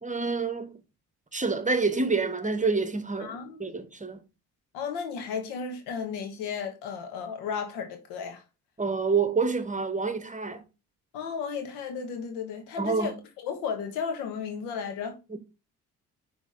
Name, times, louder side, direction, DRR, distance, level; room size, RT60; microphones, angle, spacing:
voice 1, 0.0-0.8 1.3-4.2 8.8-10.6 12.8-13.2 15.3-15.4, right 4 dB, 20° right, 1.1 m, -28 dB
voice 2, 3.2-3.6 4.7-8.4 11.1-13.1 13.4-15.2, left 6 dB, 75° left, 1.4 m, -34 dB
10.0 x 3.5 x 3.8 m
hypercardioid pair, 45°, 41 cm